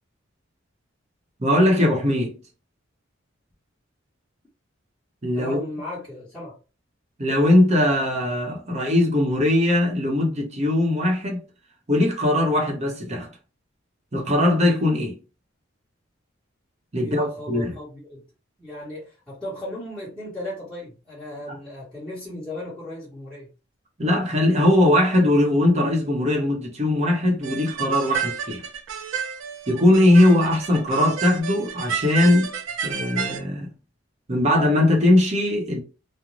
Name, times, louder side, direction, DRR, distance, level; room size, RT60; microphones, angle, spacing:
voice 1, 1.4-2.4 5.2-5.6 7.2-11.4 11.9-13.3 14.1-15.1 16.9-17.7 24.0-28.6 29.7-32.5 32.8-33.7 34.3-35.8, left 1 dB, 35° right, 0.8 m, -20 dB
voice 2, 5.3-6.5 17.0-18.2 18.6-23.5, left 1 dB, 5° left, 1.1 m, -36 dB
sound 1, 27.4-33.4, right 7 dB, 80° right, 0.5 m, -31 dB
2.5 x 2.1 x 3.0 m
head